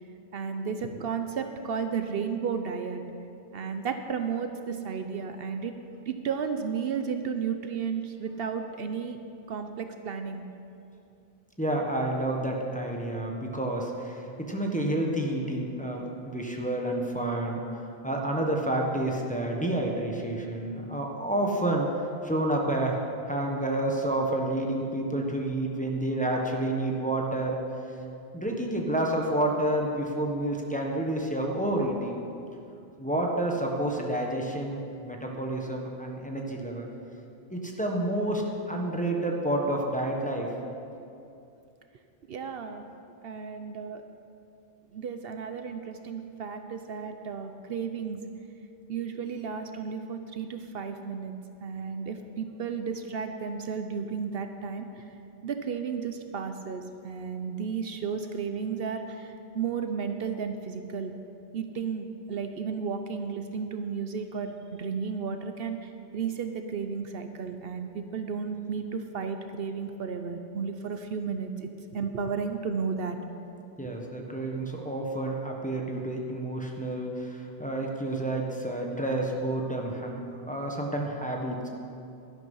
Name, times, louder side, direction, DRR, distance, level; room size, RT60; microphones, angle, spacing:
voice 1, 0.3-3.0 3.5-5.7 6.1-9.2 9.5-10.4 42.3-42.8 43.2-44.0 44.9-48.2 48.9-51.3 51.6-55.1 55.4-61.1 61.5-73.2, right 6 dB, 70° right, 7 dB, 0.9 m, -33 dB
voice 2, 11.6-17.6 18.0-21.9 22.2-23.0 23.3-27.6 28.3-32.2 33.0-36.9 37.5-40.5 73.8-81.7, right 1 dB, 10° left, -1 dB, 1.3 m, -29 dB
12.0 x 11.0 x 5.5 m, 2.6 s
omnidirectional pair, 1.0 m